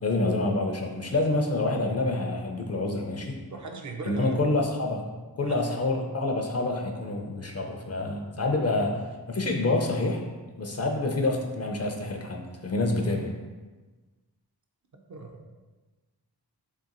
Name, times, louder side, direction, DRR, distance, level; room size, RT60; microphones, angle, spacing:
voice 1, 0.0-3.4 4.0-5.0 5.4-9.0 9.3-10.2 10.6-13.3, left 2 dB, 40° left, 2 dB, 0.4 m, -27 dB
voice 2, 3.5-4.4 5.4-5.7 14.9-15.6, right 3 dB, 45° right, 3 dB, 0.4 m, -40 dB
3.2 x 2.8 x 2.5 m, 1.3 s
cardioid pair, 40°, 41 cm